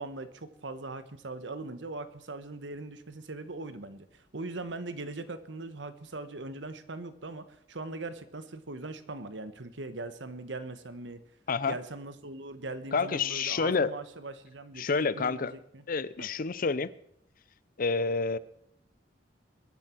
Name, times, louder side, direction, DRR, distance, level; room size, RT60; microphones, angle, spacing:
voice 1, 0.0-11.2 11.7-15.8 16.2-16.3, right 2 dB, 85° right, 12 dB, 1.2 m, -40 dB
voice 2, 12.9-13.9 14.8-15.5 15.9-16.9 17.8-18.4, left 4 dB, 50° left, 18 dB, 0.6 m, -28 dB
22.0 x 10.0 x 4.5 m, 0.72 s
head